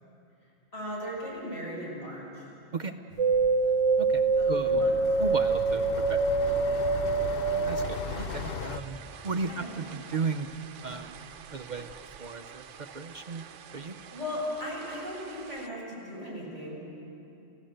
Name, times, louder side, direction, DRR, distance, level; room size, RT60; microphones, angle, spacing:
voice 1, 0.7-2.4 4.4-5.0 6.6-6.9 9.5-10.0 12.9-13.0 14.1-16.8, equal, 75° left, -4 dB, 6.6 m, -38 dB
sound 1, 3.1-8.8, left 5 dB, 55° left, 0.9 m, -38 dB
sound 2, 3.2-12.6 12.8-13.7 14.1-15.0 15.4-15.5, right 4 dB, 90° right, 1.1 m, -27 dB
voice 2, 4.0-4.9 5.2-6.3 7.6-9.0 9.2-10.5 10.8-11.2 11.5-13.5 13.7-14.0, right 4 dB, 45° right, 6 dB, 0.7 m, -35 dB
29.5 x 15.5 x 7.8 m, 2.9 s
omnidirectional pair, 1.2 m